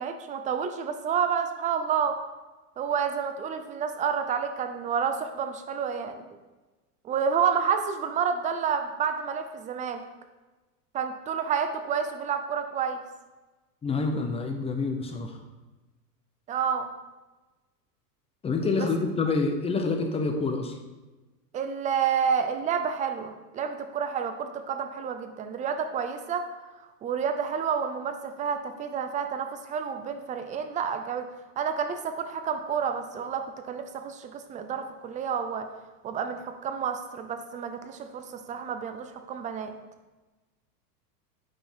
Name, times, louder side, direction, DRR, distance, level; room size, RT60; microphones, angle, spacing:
voice 1, 0.0-2.2 2.8-6.3 7.0-10.0 10.9-13.0 16.5-16.9 18.8-18.9 21.5-26.5 26.8-31.3 31.6-35.7 36.0-39.7, right 7 dB, 15° right, 8 dB, 0.5 m, -29 dB
voice 2, 13.8-15.4 18.4-20.7, left 3 dB, 15° left, 4 dB, 0.8 m, -27 dB
9.3 x 5.3 x 4.5 m, 1.2 s
supercardioid pair, 135°, 47 cm